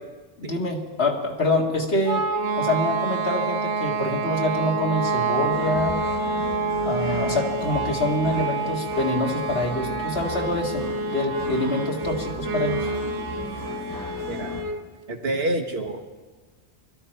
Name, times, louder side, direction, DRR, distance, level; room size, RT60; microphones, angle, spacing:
voice 1, 0.4-2.3 2.6-6.0 6.8-12.9, left 1 dB, 60° left, 0 dB, 2.1 m, -26 dB
sound 1, 2.0-14.8, right 3 dB, 85° right, 1.3 m, -28 dB
sound 2, 5.5-14.6, equal, 15° left, 2.9 m, -37 dB
voice 2, 15.1-16.0, right 1 dB, 65° right, 4 dB, 1.5 m, -27 dB
23.0 x 12.5 x 4.5 m, 1.3 s
omnidirectional pair, 1.2 m